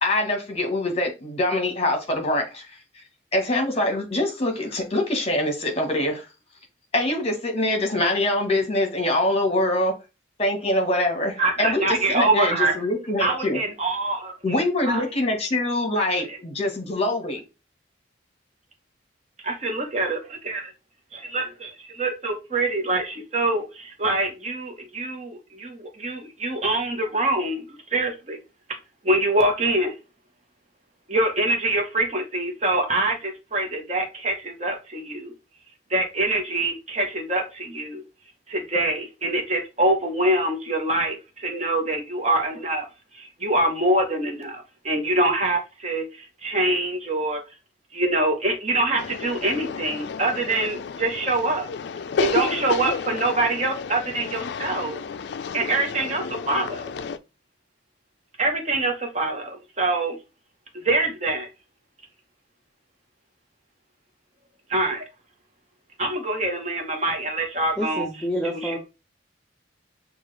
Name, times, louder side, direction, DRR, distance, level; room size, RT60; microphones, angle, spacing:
voice 1, 0.0-2.7 3.3-6.3 6.9-9.9 10.4-13.6 14.4-17.4, left 1 dB, 30° left, 1.2 m, -24 dB
voice 2, 11.4-12.7 13.2-14.6 14.9-15.0 16.2-16.4 19.4-20.6 21.1-21.7 22.0-28.4 29.0-29.9 31.1-35.3 35.9-38.0 38.5-42.9 43.1-47.4 47.9-51.7 52.2-55.0 55.5-56.9 58.4-60.2 60.8-61.5 64.7-65.0 66.0-68.1 68.4-68.8, right 2 dB, 35° right, 0.9 m, -25 dB
sound 1, 49.0-57.2, left 5 dB, 60° left, 0.3 m, -31 dB
voice 3, 67.8-68.8, equal, 5° left, 0.5 m, -28 dB
6.4 x 2.4 x 3.2 m
head